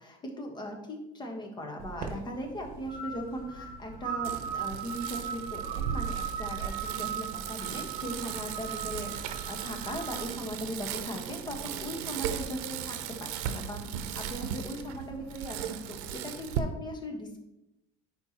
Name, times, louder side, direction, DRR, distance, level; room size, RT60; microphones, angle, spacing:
voice 1, 0.0-17.4, equal, 25° left, 2 dB, 1.4 m, -39 dB
sound 1, 1.8-10.3, right 7 dB, 55° right, 1.0 m, -38 dB
Bicycle, 4.2-16.6, right 9 dB, 90° right, 0.7 m, -37 dB
10.0 x 4.5 x 3.0 m, 0.91 s
cardioid pair, 135°, 18 cm